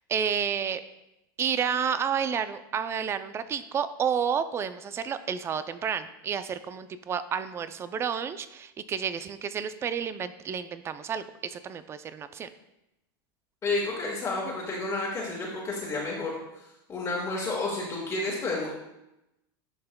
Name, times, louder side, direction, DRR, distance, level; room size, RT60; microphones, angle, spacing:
voice 1, 0.1-0.8 1.4-12.5, right 7 dB, 20° right, 12 dB, 0.4 m, -30 dB
voice 2, 13.6-16.4 16.9-18.7, left 2 dB, 25° left, -4 dB, 1.7 m, -30 dB
10.5 x 5.6 x 2.2 m, 0.90 s
supercardioid pair, 130°, 12 cm